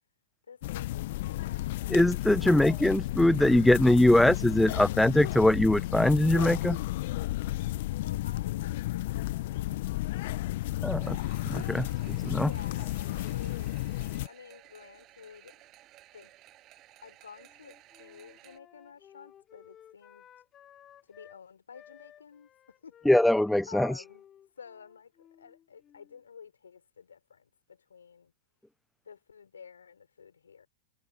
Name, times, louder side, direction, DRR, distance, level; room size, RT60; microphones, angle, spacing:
voice 1, 0.5-1.7 2.4-2.7 8.0-10.5 12.4-13.8 14.3-15.6 16.1-16.3 17.0-20.3 21.0-23.0 23.7-24.3 24.6-28.3 29.0-30.7, left 6 dB, 80° left, 5.0 m, -51 dB
sound 1, 0.6-14.3, left 17 dB, 60° left, 1.2 m, -33 dB
voice 2, 1.9-6.8 10.8-11.2 11.5-12.5 23.1-23.9, left 1 dB, 5° left, 0.4 m, -22 dB
sound 2, 11.0-18.6, right 15 dB, 35° right, 8.0 m, -57 dB
Wind instrument woodwind instrument, 17.4-21.4 21.7-26.2, left 10 dB, 30° left, 5.9 m, -57 dB
hypercardioid pair, 105°, 0 cm